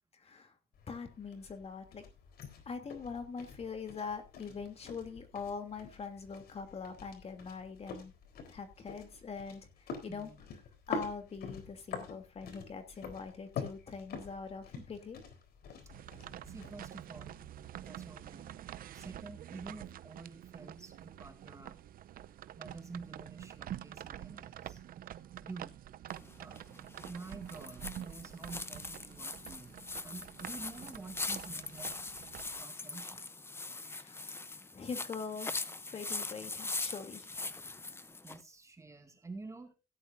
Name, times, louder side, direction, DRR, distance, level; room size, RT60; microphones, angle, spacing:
voice 1, 0.2-0.5 0.9-2.0 2.7-8.1 8.5-9.7 10.0-10.3 10.9-15.2 33.8-34.3 34.7-35.5 35.9-37.3, left 5 dB, 35° left, 6 dB, 2.9 m, -43 dB
sound 1, 0.7-17.7, left 5 dB, 65° left, 4.0 m, -47 dB
voice 2, 10.1-10.4 14.8-14.9 16.0-17.4 17.8-18.6 18.9-21.8 22.5-24.8 25.4-25.8 26.4-26.6 27.0-31.9 32.6-33.2 38.2-39.8, right 3 dB, 15° right, 5 dB, 2.1 m, -49 dB
sound 2, 15.9-32.6, right 11 dB, 55° right, 0.7 m, -47 dB
sound 3, 26.1-38.4, left 3 dB, 15° left, 0.8 m, -42 dB
17.0 x 10.5 x 2.6 m, 0.28 s
cardioid pair, 125°, 18 cm